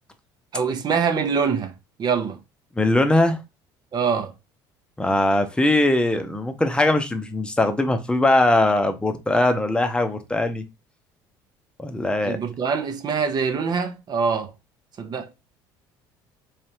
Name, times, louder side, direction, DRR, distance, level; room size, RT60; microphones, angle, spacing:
voice 1, 0.5-1.7 2.0-2.4 3.9-4.3 12.2-14.5 15.0-15.3, right 6 dB, 45° right, 0.7 m, -24 dB
voice 2, 2.8-3.4 5.0-10.6 11.8-12.4, left 2 dB, 10° left, 0.8 m, -21 dB
3.7 x 3.4 x 2.9 m
supercardioid pair, 80°, 10 cm